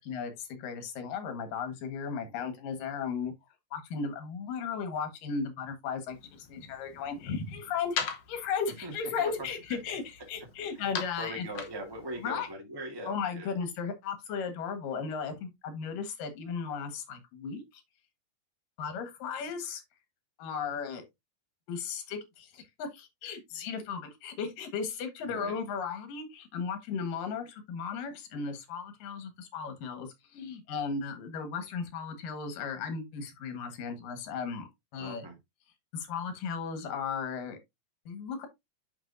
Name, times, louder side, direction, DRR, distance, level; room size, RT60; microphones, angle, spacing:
voice 1, 0.0-3.3 3.7-11.5 12.2-12.5 13.1-17.8 18.8-19.8 20.4-21.0 21.7-34.7 34.9-35.2 35.9-37.6 38.1-38.5, left 6 dB, 85° left, 3.2 m, -36 dB
sound 1, 6.1-12.5, left 7 dB, 60° left, 1.8 m, -42 dB
voice 2, 8.7-9.8 10.7-13.5 25.2-25.5 34.9-35.4, right 1 dB, 10° right, 1.2 m, -41 dB
9.8 x 5.1 x 2.6 m
omnidirectional pair, 3.8 m